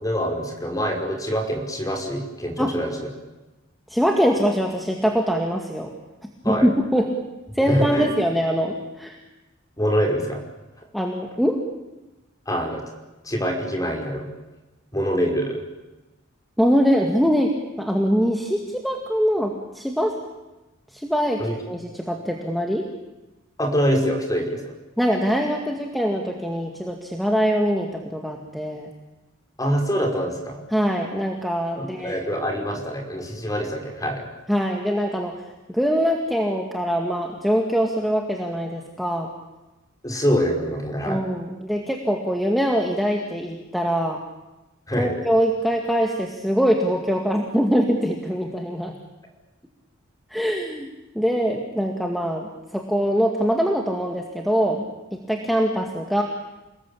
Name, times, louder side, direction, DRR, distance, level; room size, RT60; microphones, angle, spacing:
voice 1, 0.0-3.1 6.4-6.7 7.6-8.1 9.8-10.4 12.5-12.8 13.2-14.3 14.9-15.6 21.4-21.6 23.6-24.7 29.6-30.6 31.8-34.3 40.0-41.2 44.9-45.2, equal, 20° left, 2 dB, 5.3 m, -25 dB
voice 2, 3.9-5.9 6.5-7.1 7.5-9.2 10.9-11.6 16.6-20.2 20.9-21.4 21.7-22.9 25.0-28.9 30.7-32.1 34.5-35.3 35.7-39.3 41.1-44.2 45.0-49.0 50.3-50.9 51.2-56.2, equal, ahead, 2 dB, 2.1 m, -23 dB
29.0 x 20.5 x 8.7 m, 1.1 s
head